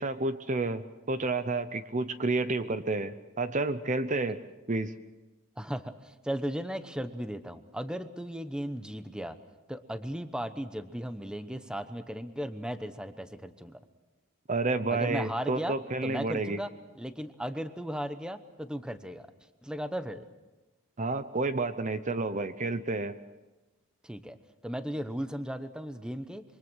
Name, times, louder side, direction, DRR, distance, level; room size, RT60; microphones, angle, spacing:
voice 1, 0.0-4.4 4.7-4.9 14.5-16.6 21.0-23.1, right 3 dB, 35° right, 12 dB, 0.7 m, -30 dB
voice 2, 5.6-9.4 9.7-13.8 14.9-15.8 16.0-16.7 16.9-19.3 19.6-20.3 24.0-24.4 24.6-26.4, equal, 5° right, 10 dB, 0.9 m, -36 dB
26.5 x 24.0 x 6.3 m, 1.1 s
head